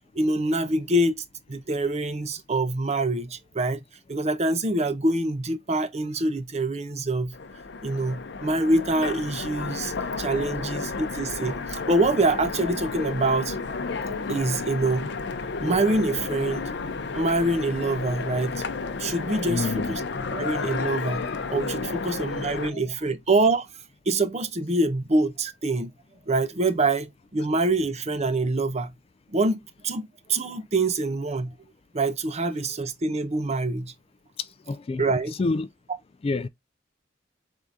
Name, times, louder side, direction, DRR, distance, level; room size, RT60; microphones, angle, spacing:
voice 1, 0.1-1.2 1.5-3.8 4.1-7.3 7.8-13.6 14.3-15.1 15.6-16.7 17.1-18.6 19.0-20.0 20.3-23.7 24.1-25.9 26.3-28.9 29.3-31.5 31.9-33.9 35.0-35.3, right 2 dB, 40° right, 0.7 m, -25 dB
Train, 7.3-22.7, left 4 dB, 65° left, 0.6 m, -32 dB
voice 2, 19.5-19.9 22.6-22.8 34.7-35.0 35.4-35.7 36.2-36.5, left 3 dB, 30° left, 0.3 m, -27 dB
4.8 x 3.6 x 2.6 m
head